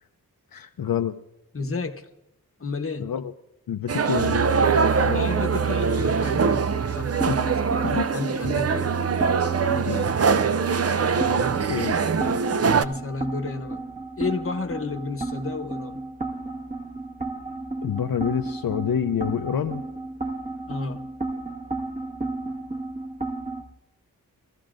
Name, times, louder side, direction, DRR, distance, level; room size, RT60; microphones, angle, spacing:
voice 1, 0.5-1.2 3.0-3.3 3.7-4.4 5.0-5.2 7.1-7.4 7.8-8.1 9.9-10.1 11.7-12.0 17.8-19.8, left 8 dB, 65° left, 0.6 m, -27 dB
voice 2, 1.5-2.1 2.6-3.1 5.1-6.6 6.9-8.9 9.7-10.0 12.8-13.8 14.2-16.0 20.7-21.0, left 3 dB, 35° left, 1.0 m, -32 dB
sound 1, 3.9-12.8, right 5 dB, 40° right, 0.5 m, -23 dB
sound 2, 6.2-23.6, right 2 dB, 20° right, 1.6 m, -33 dB
23.0 x 15.0 x 2.5 m
wide cardioid pair, 90°, 37 cm